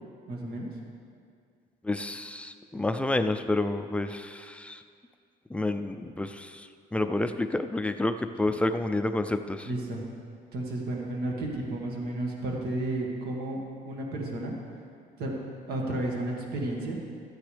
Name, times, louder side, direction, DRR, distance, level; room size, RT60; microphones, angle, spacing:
voice 1, 0.3-0.7 8.4-8.6 9.7-10.0 10.5-14.6 15.2-15.4 15.7-17.0, right 1 dB, 70° right, -1 dB, 1.9 m, -32 dB
voice 2, 1.8-4.8 5.5-9.7, left 2 dB, 5° left, 8 dB, 0.4 m, -29 dB
14.0 x 9.2 x 3.4 m, 2.2 s
cardioid pair, 110°, 17 cm